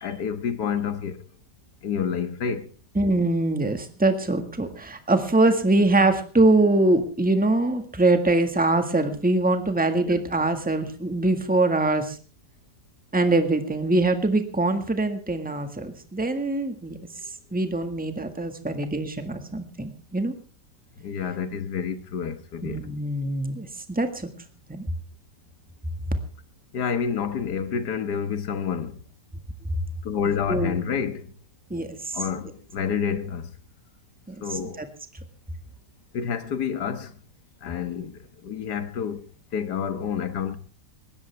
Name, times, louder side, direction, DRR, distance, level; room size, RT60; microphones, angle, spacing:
voice 1, 0.0-1.2 1.8-2.7 10.1-10.2 21.0-22.9 26.7-29.0 30.0-31.3 32.1-33.5 34.4-34.8 36.1-37.1 37.6-39.3 39.5-40.6, left 7 dB, 75° left, 1.9 m, -29 dB
voice 2, 2.9-12.2 13.1-17.0 17.5-20.3 22.6-24.3 24.7-24.8 30.5-30.8 31.7-32.2 34.3-34.8, right 2 dB, 5° right, 1.6 m, -23 dB
20.5 x 16.5 x 3.4 m
omnidirectional pair, 1.8 m